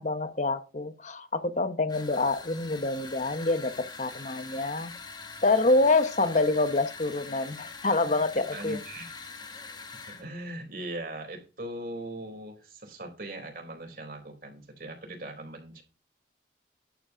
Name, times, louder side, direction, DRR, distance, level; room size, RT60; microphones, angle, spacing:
voice 1, 0.0-4.9 5.4-8.8, left 3 dB, 40° left, 0.8 m, -26 dB
sound 1, 1.9-10.3, left 4 dB, 25° left, 1.2 m, -44 dB
voice 2, 8.5-9.2 10.1-15.8, right 1 dB, 55° right, 4.1 m, -40 dB
11.5 x 4.9 x 6.1 m
head